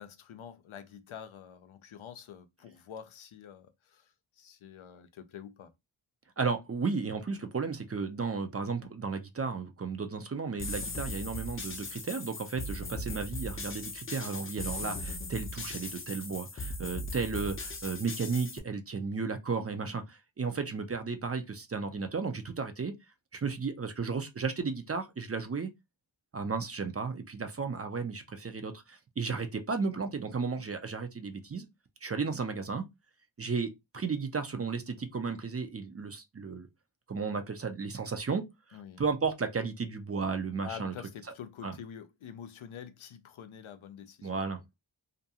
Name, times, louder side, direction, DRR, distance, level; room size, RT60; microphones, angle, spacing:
voice 1, 0.0-5.7 38.7-39.0 40.6-44.4, left 8 dB, 80° left, 0.6 m, -47 dB
voice 2, 6.4-22.9 23.3-25.7 26.3-31.7 32.0-32.8 33.4-36.7 37.1-38.4 39.0-40.9 41.6-41.7 44.2-44.6, right 5 dB, 30° right, 0.4 m, -34 dB
sound 1, 10.6-18.6, left 2 dB, 30° left, 0.5 m, -38 dB
2.5 x 2.2 x 2.7 m
wide cardioid pair, 60°, 48 cm